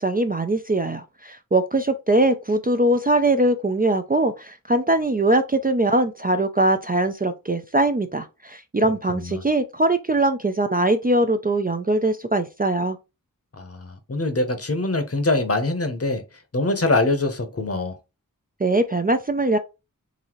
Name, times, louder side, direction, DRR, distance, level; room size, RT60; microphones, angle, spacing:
voice 1, 0.0-13.0 18.6-19.6, right 2 dB, 25° right, 0.4 m, -21 dB
voice 2, 9.1-9.4 13.5-16.2 16.5-18.0, left 2 dB, 45° left, 0.8 m, -24 dB
4.0 x 2.6 x 3.0 m
wide cardioid pair, 55°, 34 cm